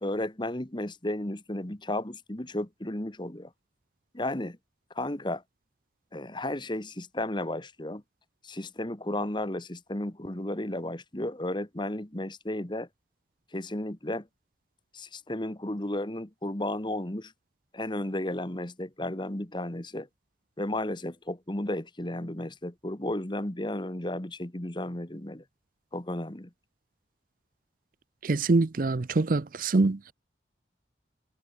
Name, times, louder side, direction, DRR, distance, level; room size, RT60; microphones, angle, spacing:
voice 1, 0.0-3.5 4.1-4.6 4.9-5.4 6.1-8.0 8.4-12.9 13.5-14.3 14.9-17.3 17.7-20.1 20.6-25.4 25.9-26.5, left 1 dB, 25° left, 1.5 m, -33 dB
voice 2, 28.2-30.1, right 3 dB, 50° right, 0.6 m, -24 dB
head